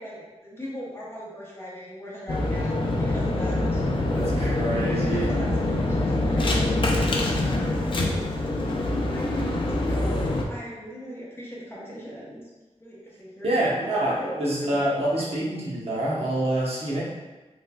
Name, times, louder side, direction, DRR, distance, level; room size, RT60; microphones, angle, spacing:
voice 1, 0.0-3.8 4.4-8.1 8.7-12.4 12.8-13.7 14.0-14.3 14.6-15.0 16.1-16.5, equal, 20° left, -6 dB, 0.8 m, -40 dB
sound 1, 2.3-10.4, left 2 dB, 45° left, 0.4 m, -25 dB
voice 2, 4.1-5.3 13.4-17.0, right 1 dB, 60° right, -6 dB, 0.9 m, -26 dB
3.2 x 3.0 x 2.2 m, 1.2 s
wide cardioid pair, 110°, 12 cm